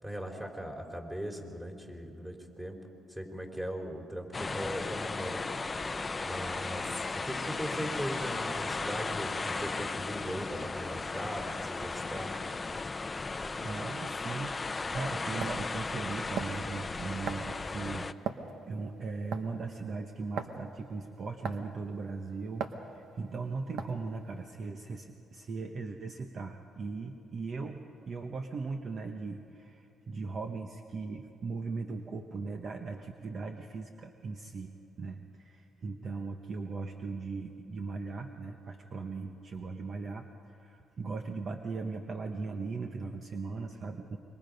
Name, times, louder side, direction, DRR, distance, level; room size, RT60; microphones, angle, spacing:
voice 1, 0.0-2.8 3.1-5.4 6.2-12.3, equal, 15° right, 3 dB, 3.7 m, -39 dB
sound 1, 4.3-18.1, left 3 dB, 25° left, 0.6 m, -36 dB
voice 2, 13.5-44.2, right 4 dB, 50° right, 5 dB, 1.0 m, -39 dB
sound 2, 14.7-14.8 15.4-15.6 16.4-16.6 17.3-17.5 18.2-18.5 19.3-19.6 20.4-20.6 21.4-21.7 22.6-22.8 23.8-24.1, right 7 dB, 75° right, 1.2 m, -36 dB
26.0 x 23.0 x 5.3 m, 2.9 s
cardioid pair, 90°, 0 cm